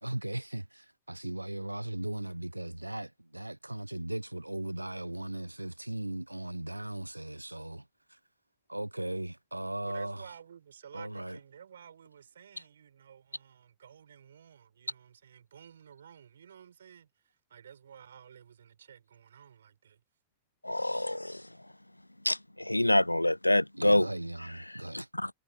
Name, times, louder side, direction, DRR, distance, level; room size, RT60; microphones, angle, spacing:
voice 1, 0.0-8.2 8.7-10.3 10.9-11.4 23.7-25.1, right 1 dB, 85° right, 0.8 m, -38 dB
voice 2, 9.8-20.0, right 8 dB, 65° right, 6.3 m, -53 dB
voice 3, 20.6-21.4 22.2-24.1 24.9-25.3, left 1 dB, 90° left, 0.4 m, -26 dB
figure-of-eight pair, 90°, 0 cm